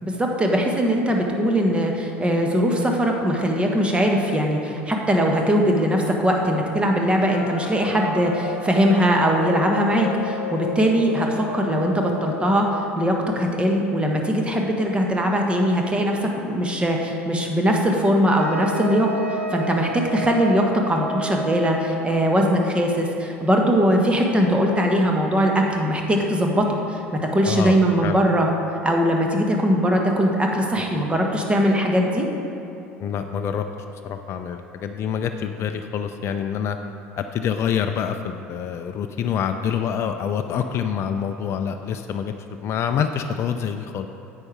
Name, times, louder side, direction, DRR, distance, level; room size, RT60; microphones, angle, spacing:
voice 1, 0.0-28.5 28.8-32.3, equal, 15° right, 1 dB, 1.3 m, -21 dB
sound 1, 7.3-12.9, left 4 dB, 85° left, 0.6 m, -33 dB
Wind instrument woodwind instrument, 18.4-22.2, right 2 dB, 85° right, 0.8 m, -31 dB
voice 2, 27.5-27.8 28.0-28.2 33.0-33.7 34.0-36.8 37.2-42.3 42.6-44.1, left 8 dB, 40° left, 6 dB, 0.5 m, -26 dB
9.6 x 7.3 x 4.8 m, 2.8 s
figure-of-eight pair, 70°, 7 cm